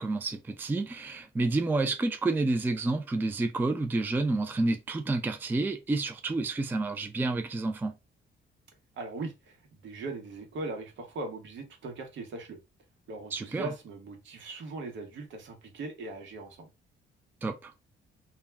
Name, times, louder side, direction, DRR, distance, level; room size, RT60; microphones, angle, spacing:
voice 1, 0.0-7.9 13.3-13.7 17.4-17.7, right 2 dB, 10° right, 0.3 m, -29 dB
voice 2, 9.0-12.6 13.1-16.7, right 3 dB, 70° right, 0.9 m, -39 dB
2.3 x 2.1 x 3.2 m
cardioid pair, 90°, 20 cm